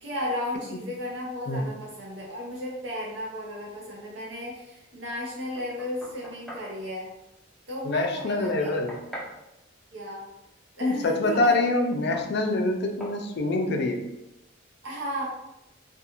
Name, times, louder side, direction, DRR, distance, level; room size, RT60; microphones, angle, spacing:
voice 1, 0.0-7.1 7.7-8.8 9.9-10.2 10.8-11.7 14.8-15.2, left 1 dB, 70° right, -4 dB, 0.6 m, -34 dB
Knock, 5.6-6.7 8.2-9.4 11.4-11.6 12.1-12.3 13.0-13.2, equal, ahead, 0.6 m, -41 dB
voice 2, 7.8-8.9 10.8-14.0, left 2 dB, 60° left, 4 dB, 0.4 m, -25 dB
2.4 x 2.3 x 2.8 m, 0.89 s
head